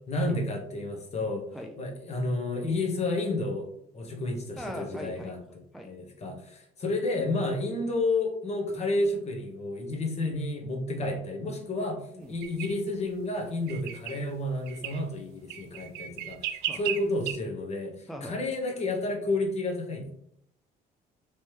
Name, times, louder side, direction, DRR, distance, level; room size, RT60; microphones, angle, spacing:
voice 1, 0.1-1.5 1.8-5.4 5.8-20.1, left 2 dB, 40° left, 1 dB, 1.0 m, -31 dB
voice 2, 4.6-5.4 5.7-5.9 10.9-11.0 12.1-12.3 16.6-16.8 18.1-18.4, equal, ahead, 3 dB, 0.3 m, -40 dB
sound 1, 12.4-12.7 13.7-14.2 14.7-15.0 15.5-17.3, right 11 dB, 80° right, 0.4 m, -35 dB
3.2 x 3.0 x 3.2 m, 0.71 s
cardioid pair, 110°, 17 cm